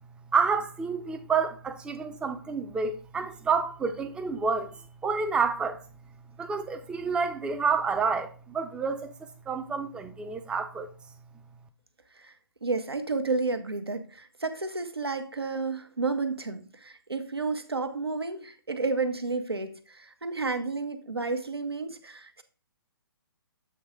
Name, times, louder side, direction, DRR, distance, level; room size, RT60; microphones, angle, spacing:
voice 1, 0.3-5.8 6.4-10.9, right 5 dB, 5° right, 0.5 m, -29 dB
voice 2, 12.6-22.4, right 3 dB, 85° right, 0.8 m, -31 dB
7.8 x 3.2 x 4.8 m
figure-of-eight pair, 130°, 13 cm